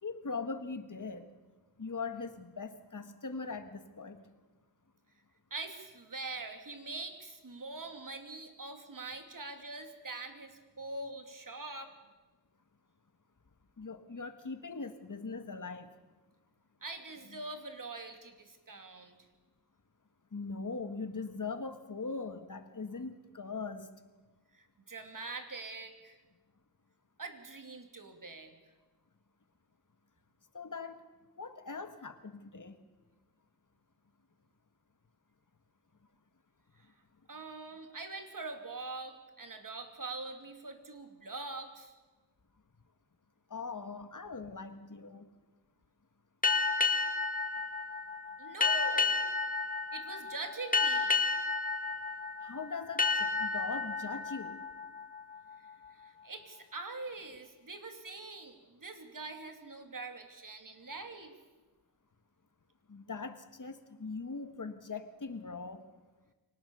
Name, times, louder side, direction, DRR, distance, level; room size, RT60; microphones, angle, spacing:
voice 1, 0.0-1.3 1.8-4.2 13.8-15.9 17.3-17.4 20.3-23.9 30.5-31.0 31.4-32.8 43.5-45.3 52.4-54.6 62.9-65.9, left 4 dB, 50° left, 8 dB, 1.7 m, -41 dB
voice 2, 5.5-11.9 16.8-19.2 24.5-26.2 27.2-28.5 37.3-41.9 48.4-49.2 49.9-51.2 55.9-61.4, right 3 dB, 50° right, 6 dB, 2.6 m, -43 dB
sound 1, 46.4-55.7, left 4 dB, 20° left, 1.7 m, -32 dB
24.5 x 18.5 x 7.0 m, 1.3 s
wide cardioid pair, 70°, 40 cm